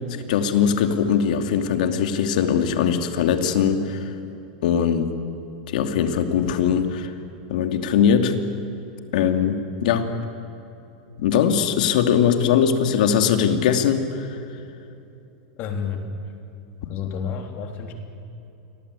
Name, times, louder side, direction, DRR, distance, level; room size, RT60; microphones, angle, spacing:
voice 1, 0.3-4.1 4.6-5.1 5.7-7.1 7.5-8.4 9.1-10.1 11.2-14.3, left 7 dB, 70° left, 6 dB, 2.7 m, -21 dB
voice 2, 15.6-16.0 16.9-17.9, left 7 dB, 40° left, 4 dB, 3.6 m, -30 dB
29.0 x 23.0 x 8.5 m, 2.9 s
supercardioid pair, 150°, 5 cm